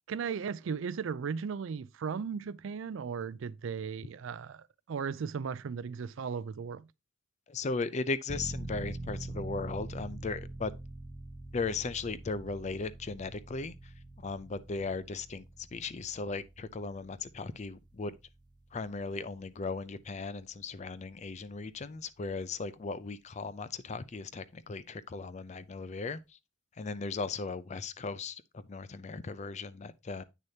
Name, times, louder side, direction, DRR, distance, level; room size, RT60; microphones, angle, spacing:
voice 1, 0.1-6.9, right 6 dB, 65° right, 0.4 m, -36 dB
voice 2, 7.5-10.7 11.5-18.2 18.7-26.4 26.7-30.2, left 4 dB, 35° left, 0.4 m, -37 dB
sound 1, 8.3-20.8 21.2-21.3, right 2 dB, 20° right, 0.6 m, -45 dB
8.6 x 6.5 x 2.8 m
head